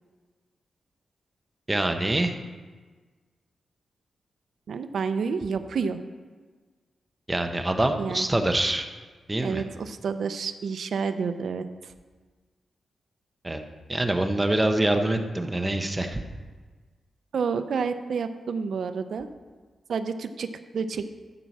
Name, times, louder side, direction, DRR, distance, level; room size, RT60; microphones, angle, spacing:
voice 1, 1.7-2.3 7.3-8.9 9.3-9.6 13.4-13.6 13.9-16.2, right 1 dB, 15° right, 6 dB, 0.9 m, -25 dB
voice 2, 4.7-6.0 8.0-8.3 9.4-11.9 17.3-19.3 19.9-20.5 20.7-21.2, right 5 dB, 70° right, 9 dB, 0.6 m, -29 dB
13.5 x 4.7 x 7.2 m, 1.4 s
wide cardioid pair, 105°, 0 cm